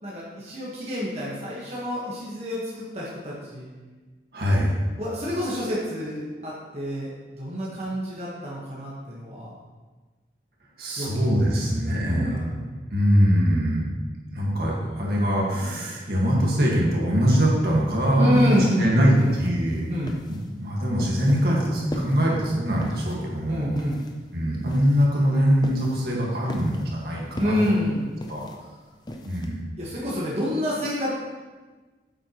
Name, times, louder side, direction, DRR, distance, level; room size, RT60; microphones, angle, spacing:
voice 1, 0.0-3.7 5.0-9.5 11.0-11.3 11.6-12.6 14.6-14.8 18.2-19.3 19.9-20.2 23.5-24.0 27.4-28.1 29.8-31.1, equal, 35° right, -7 dB, 1.5 m, -28 dB
voice 2, 4.3-4.7 10.8-12.4 12.9-13.9 14.3-19.9 20.3-23.7 24.3-27.7 28.3-28.4 29.2-29.7, equal, 60° right, -3 dB, 1.9 m, -22 dB
sound 1, 17.9-29.6, left 1 dB, 25° left, 0.6 m, -40 dB
8.9 x 7.9 x 3.1 m, 1.3 s
head